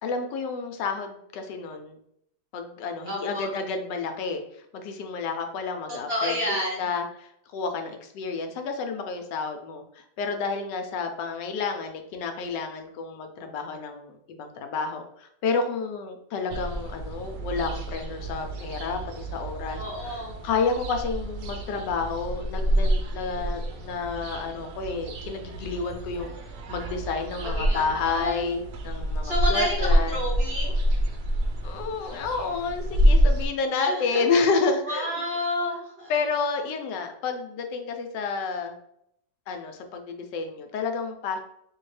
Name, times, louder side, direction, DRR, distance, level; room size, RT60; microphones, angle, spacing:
voice 1, 0.0-2.0 2.5-4.4 4.7-6.4 6.8-19.8 20.4-26.3 26.7-30.2 31.6-35.1 36.1-38.8 39.5-41.4, left 4 dB, 85° left, 5 dB, 1.2 m, -30 dB
voice 2, 3.1-3.5 5.9-6.8 19.8-20.4 27.4-28.5 29.2-30.8 33.8-34.3 34.8-36.1, left 1 dB, 40° right, -4 dB, 1.3 m, -30 dB
sound 1, 16.5-33.5, equal, 70° right, 1.1 m, -27 dB
3.6 x 2.7 x 3.1 m, 0.73 s
omnidirectional pair, 1.8 m